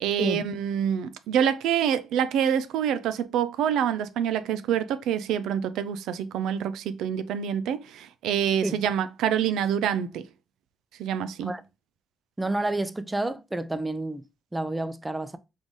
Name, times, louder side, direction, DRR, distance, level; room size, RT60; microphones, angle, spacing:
voice 1, 0.0-10.3 11.0-11.5, right 9 dB, 85° right, 0.4 m, -26 dB
voice 2, 12.4-14.2 14.5-15.4, right 2 dB, 15° right, 0.5 m, -29 dB
3.9 x 3.7 x 3.1 m
cardioid pair, 90°, 0 cm